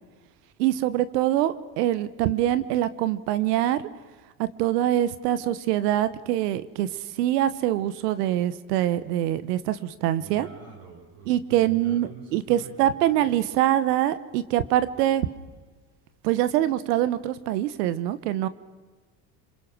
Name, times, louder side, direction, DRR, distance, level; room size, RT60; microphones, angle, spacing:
voice 1, 0.6-3.8 4.4-10.5 11.3-15.3 16.2-18.5, right 13 dB, 90° right, 14 dB, 1.0 m, -24 dB
voice 2, 10.2-13.6, right 5 dB, 70° right, -3 dB, 4.5 m, -45 dB
26.5 x 22.5 x 6.1 m, 1.4 s
supercardioid pair, 85°, 46 cm